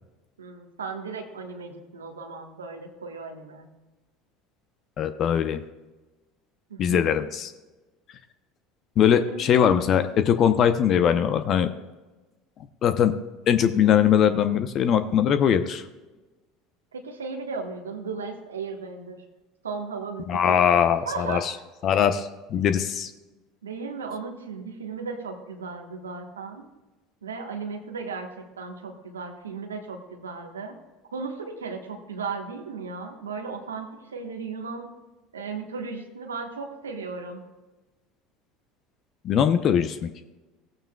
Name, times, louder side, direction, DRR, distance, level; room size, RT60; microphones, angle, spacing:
voice 1, 0.4-3.7 6.7-7.2 9.2-9.4 16.9-19.2 19.6-20.7 21.0-21.5 23.6-26.6 27.2-30.8 31.1-34.9 35.3-37.4, right 4 dB, 90° right, 3 dB, 1.2 m, -36 dB
voice 2, 5.0-5.6 6.8-7.5 9.0-11.7 12.8-13.1 13.5-15.8 20.3-21.5 21.8-23.1 39.2-40.2, left 8 dB, 50° left, 10 dB, 0.7 m, -21 dB
16.5 x 8.8 x 2.3 m, 1.2 s
hypercardioid pair, 75°, 0 cm